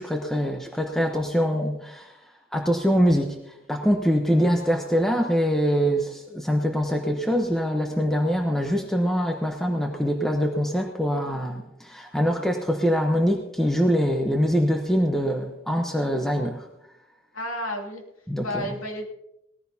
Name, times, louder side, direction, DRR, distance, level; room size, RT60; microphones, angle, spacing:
voice 1, 0.0-16.7 18.3-18.7, equal, ahead, 2 dB, 0.9 m, -24 dB
voice 2, 17.3-18.0 18.4-19.1, left 1 dB, 85° left, 2 dB, 2.6 m, -31 dB
20.0 x 15.0 x 2.8 m, 0.84 s
head